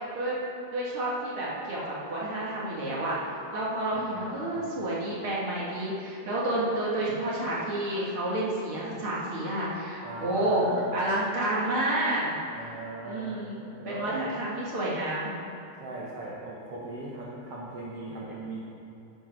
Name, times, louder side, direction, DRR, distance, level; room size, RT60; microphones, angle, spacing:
voice 1, 0.7-12.4 13.0-13.6 13.9-15.4, right 1 dB, 45° right, -6 dB, 2.1 m, -30 dB
voice 2, 3.9-4.8 10.0-10.9 12.5-14.3 15.8-18.6, right 2 dB, 75° right, -5 dB, 1.3 m, -40 dB
11.0 x 7.7 x 5.9 m, 2.9 s
omnidirectional pair, 4.6 m